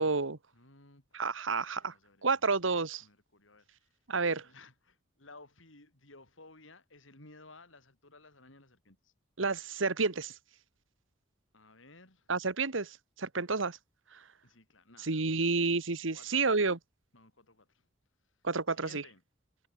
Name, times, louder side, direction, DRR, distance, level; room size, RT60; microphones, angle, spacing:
voice 1, 0.0-0.4 1.1-1.9 2.2-3.0 4.1-4.5 9.4-10.3 12.3-13.8 14.1-14.2 15.0-16.8 18.4-19.0, right 4 dB, 85° right, 1.5 m, -30 dB
voice 2, 0.5-1.2 1.8-2.6 3.0-4.0 4.4-9.1 11.5-12.3 14.4-15.7 16.1-16.7 17.1-17.9 18.2-19.2, left 3 dB, 85° left, 6.6 m, -57 dB
head